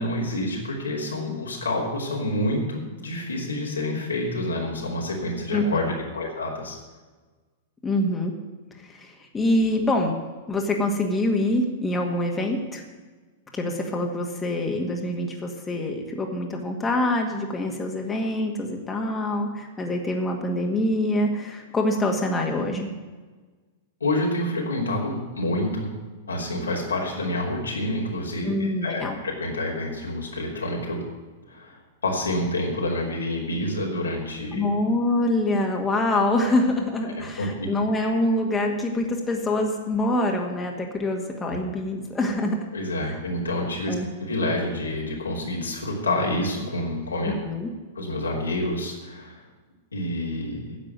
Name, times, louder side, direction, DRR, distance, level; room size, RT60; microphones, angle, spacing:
voice 1, 0.0-6.8 24.0-25.9 26.3-28.5 28.8-31.0 31.5-31.8 32.0-34.6 37.1-37.7 41.5-41.6 42.7-43.9 44.2-47.3 47.9-49.4 49.9-50.8, left 1 dB, 85° left, -2 dB, 3.1 m, -28 dB
voice 2, 5.5-5.9 7.8-8.3 8.8-10.1 10.5-12.8 13.5-22.9 28.4-29.2 34.5-42.6 43.9-44.1 47.4-47.7, left 1 dB, 15° left, 1 dB, 1.9 m, -25 dB
10.0 x 7.4 x 9.2 m, 1.3 s
hypercardioid pair, 100°, 0 cm